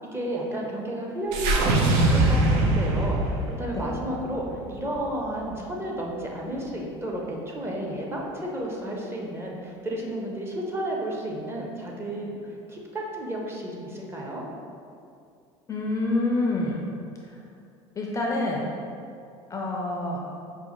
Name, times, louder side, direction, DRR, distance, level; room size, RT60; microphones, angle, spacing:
voice 1, 0.0-14.4, right 1 dB, 20° right, -2 dB, 0.6 m, -32 dB
sound 1, 1.3-5.6, right 2 dB, 75° right, 0.5 m, -23 dB
voice 2, 15.7-16.8 18.0-18.7 19.5-20.2, left 2 dB, 25° left, -2 dB, 0.4 m, -27 dB
5.2 x 2.1 x 3.0 m, 2.4 s
supercardioid pair, 95°, 14 cm